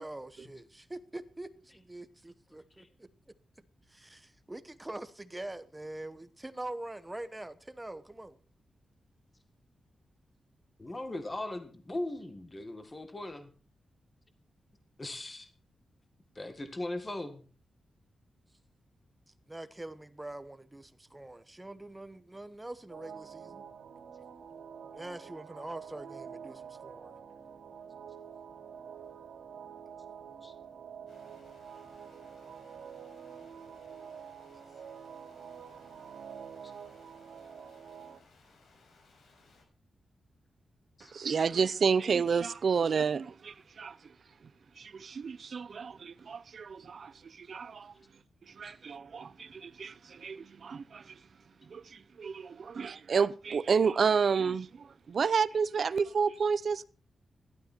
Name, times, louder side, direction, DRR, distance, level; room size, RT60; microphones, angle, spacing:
voice 1, 0.0-3.1 3.9-8.4 19.5-23.6 24.9-27.1, right 1 dB, 10° right, 0.9 m, -44 dB
voice 2, 10.8-13.5 15.0-15.5 16.4-17.4 30.4-30.5 41.0-41.1 48.6-48.7, left 1 dB, 20° left, 1.8 m, -39 dB
sound 1, 22.9-38.2, right 7 dB, 85° right, 2.8 m, -47 dB
sound 2, 31.1-39.6, left 3 dB, 80° left, 5.8 m, -63 dB
voice 3, 41.1-44.0 44.8-47.9 48.6-51.0 51.7-56.8, right 6 dB, 50° right, 0.6 m, -30 dB
15.5 x 12.0 x 4.4 m
wide cardioid pair, 145°, 0 cm